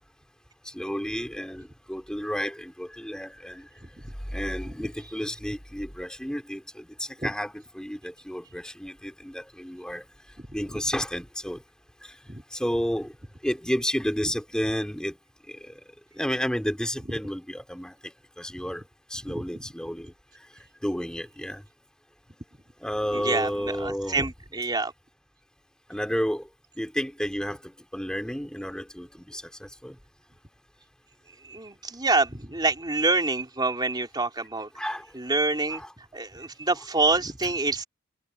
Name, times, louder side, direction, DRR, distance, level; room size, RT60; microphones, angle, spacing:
voice 1, 0.6-3.7 4.3-10.0 10.5-11.6 12.0-12.1 12.5-13.1 13.4-15.1 15.5-15.7 16.2-17.9 18.4-18.8 19.1-20.1 20.8-21.6 22.8-24.3 25.9-26.4 26.8-30.0 34.8-35.1 35.7-35.9, equal, 5° left, 4.8 m, -31 dB
voice 2, 3.8-4.1 7.2-7.3 12.3-12.4 18.5-18.6 19.2-19.5 23.1-24.9 31.4-34.7 35.1-37.8, right 3 dB, 20° right, 3.5 m, -27 dB
head